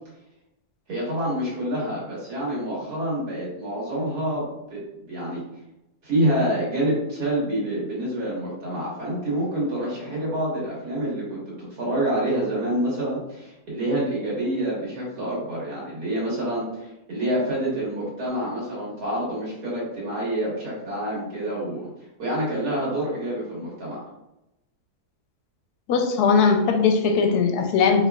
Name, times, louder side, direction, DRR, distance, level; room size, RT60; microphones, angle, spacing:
voice 1, 0.9-4.4 4.7-4.8 5.1-5.4 6.0-21.9 22.2-24.0, right 1 dB, 75° right, -6 dB, 2.2 m, -27 dB
voice 2, 25.9-28.1, left 5 dB, 90° left, 5 dB, 1.1 m, -19 dB
4.4 x 3.7 x 2.3 m, 0.91 s
omnidirectional pair, 1.6 m